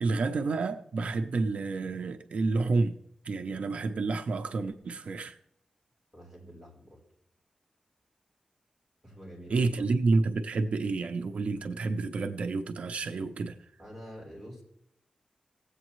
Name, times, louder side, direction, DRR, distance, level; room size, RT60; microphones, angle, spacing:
voice 1, 0.0-2.9 3.2-5.4 9.5-13.6, right 3 dB, 75° right, 0.6 m, -29 dB
voice 2, 6.1-7.0 9.0-9.8 13.8-14.6, equal, ahead, 4.5 m, -47 dB
16.5 x 8.2 x 3.1 m
wide cardioid pair, 140°, 2 cm